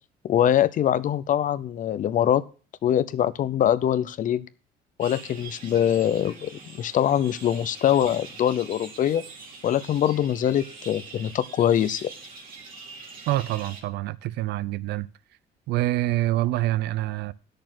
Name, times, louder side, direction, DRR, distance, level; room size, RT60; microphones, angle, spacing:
voice 1, 0.2-2.4 2.8-4.5 5.0-9.2 9.6-12.1, left 10 dB, 50° left, 0.7 m, -23 dB
sound 1, 5.0-13.8, right 4 dB, 55° right, 2.8 m, -44 dB
voice 2, 13.3-15.1 15.7-17.3, right 16 dB, 80° right, 0.5 m, -26 dB
10.5 x 6.7 x 6.0 m
cardioid pair, 110°, 17 cm